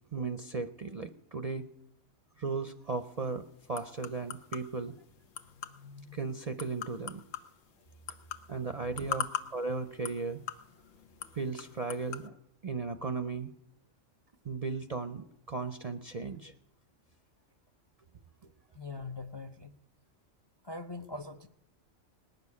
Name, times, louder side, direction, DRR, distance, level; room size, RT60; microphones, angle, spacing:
voice 1, 0.1-1.7 2.4-3.4 3.7-4.9 6.1-7.2 8.5-10.4 11.4-12.4 12.6-13.5 14.4-16.5, right 4 dB, 45° right, 9 dB, 0.5 m, -36 dB
sound 1, 2.8-12.3, left 8 dB, 85° left, 1.2 m, -43 dB
voice 2, 18.8-19.7 20.6-21.5, left 3 dB, 35° left, 9 dB, 0.4 m, -42 dB
19.0 x 6.8 x 9.7 m, 0.81 s
omnidirectional pair, 1.3 m